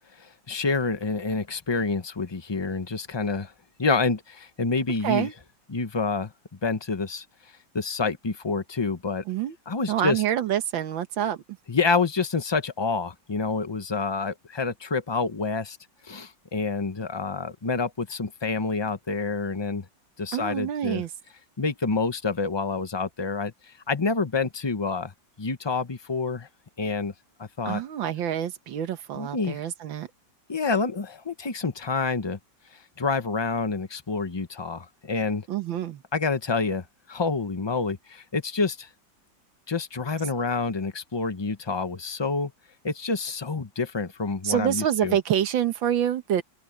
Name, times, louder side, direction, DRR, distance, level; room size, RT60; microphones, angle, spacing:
voice 1, 0.2-3.5 3.8-5.3 5.7-6.3 6.6-7.2 7.7-9.2 9.7-10.2 11.7-15.8 16.0-19.8 20.2-21.0 21.6-23.5 23.9-25.1 25.4-26.5 26.8-27.1 27.4-27.8 29.1-29.6 30.5-32.4 33.0-35.5 36.1-38.9 39.7-42.5 42.8-45.2, left 4 dB, 25° left, 0.5 m, -28 dB
voice 2, 9.9-11.4 20.3-21.1 27.6-30.1 35.5-36.0 44.4-46.4, right 10 dB, 85° right, 1.9 m, -26 dB
open air
omnidirectional pair, 2.1 m